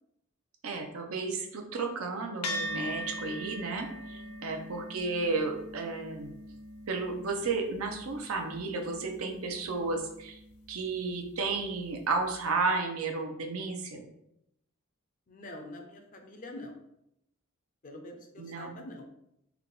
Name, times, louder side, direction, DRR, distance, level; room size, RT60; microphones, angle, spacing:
voice 1, 0.6-6.3 6.9-10.4 10.7-14.0 18.4-18.8, right 3 dB, 80° right, 3 dB, 0.6 m, -33 dB
sound 1, 2.4-11.1, left 1 dB, 85° left, 0.6 m, -42 dB
voice 2, 4.2-4.7 15.3-16.8 17.8-19.1, left 1 dB, 40° left, 3 dB, 0.5 m, -46 dB
3.4 x 2.3 x 3.7 m, 0.79 s
head